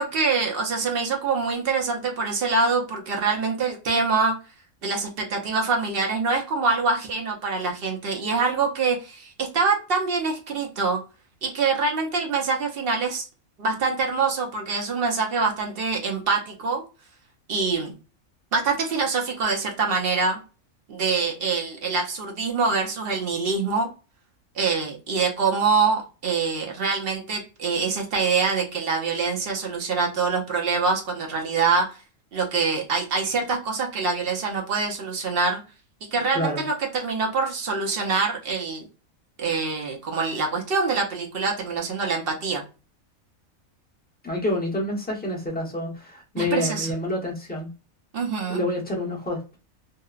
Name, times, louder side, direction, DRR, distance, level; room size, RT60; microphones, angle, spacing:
voice 1, 0.0-4.3 4.8-11.0 11.4-13.2 13.6-16.8 17.5-17.9 18.5-20.4 20.9-23.9 24.6-32.0 32.3-35.6 36.1-38.9 39.4-42.6 46.4-46.9 48.1-48.6, right 4 dB, 55° right, 1 dB, 0.8 m, -25 dB
voice 2, 36.3-36.7 44.2-47.7 48.5-49.6, left 1 dB, 10° left, -3 dB, 0.6 m, -28 dB
2.8 x 2.1 x 2.3 m, 0.33 s
omnidirectional pair, 1.4 m